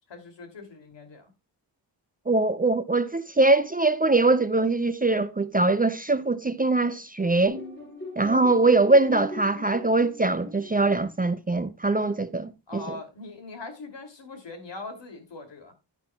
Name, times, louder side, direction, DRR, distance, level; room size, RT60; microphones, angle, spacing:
voice 1, 0.1-1.3 12.7-15.7, left 3 dB, 80° left, 2.8 m, -41 dB
voice 2, 2.3-7.6 8.2-13.0, right 2 dB, 20° right, 0.4 m, -22 dB
sound 1, 7.5-11.1, left 2 dB, 25° left, 6.0 m, -39 dB
10.5 x 10.0 x 2.3 m
wide cardioid pair, 110°, 43 cm